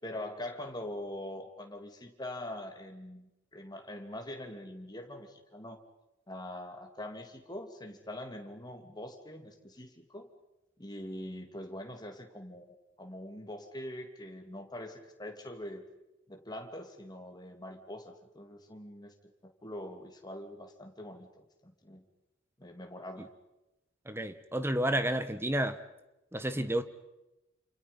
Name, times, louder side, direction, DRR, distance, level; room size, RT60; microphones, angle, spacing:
voice 1, 0.0-5.8 6.3-10.3 10.8-15.9 16.3-19.1 19.4-22.0 22.6-23.3 26.5-26.7, left 1 dB, 20° left, 4 dB, 3.0 m, -43 dB
voice 2, 24.0-25.8 26.3-26.8, right 1 dB, 10° right, 11 dB, 1.4 m, -30 dB
29.5 x 28.0 x 5.5 m, 0.96 s
head